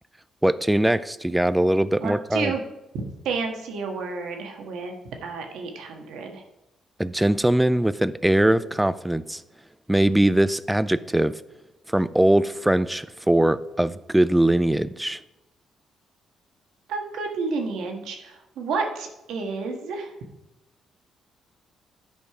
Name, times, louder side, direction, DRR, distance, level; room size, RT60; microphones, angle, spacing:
voice 1, 0.4-2.5 7.0-9.4 9.9-11.4 11.9-15.2, right 1 dB, 5° right, 16 dB, 0.4 m, -21 dB
voice 2, 2.0-2.6 3.2-4.9 5.2-6.4 16.9-20.1, right 4 dB, 80° right, 3 dB, 1.5 m, -30 dB
11.5 x 5.2 x 4.9 m, 0.94 s
cardioid pair, 90°, 0 cm